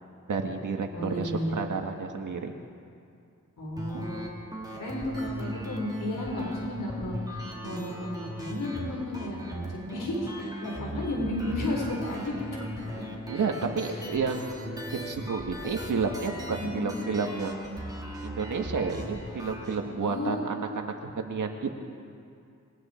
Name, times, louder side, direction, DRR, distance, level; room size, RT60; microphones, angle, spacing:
voice 1, 0.3-2.5 3.9-4.0 13.3-17.6 18.2-21.7, right 4 dB, 80° right, 3 dB, 1.9 m, -31 dB
voice 2, 0.9-1.6 3.6-4.3 4.7-13.4 13.9-14.1 16.6-16.9 20.0-20.4, left 1 dB, 90° left, -2 dB, 4.4 m, -33 dB
sound 1, 3.8-19.8, equal, 10° right, 3.5 m, -39 dB
27.0 x 22.5 x 4.5 m, 2.5 s
wide cardioid pair, 100°, 31 cm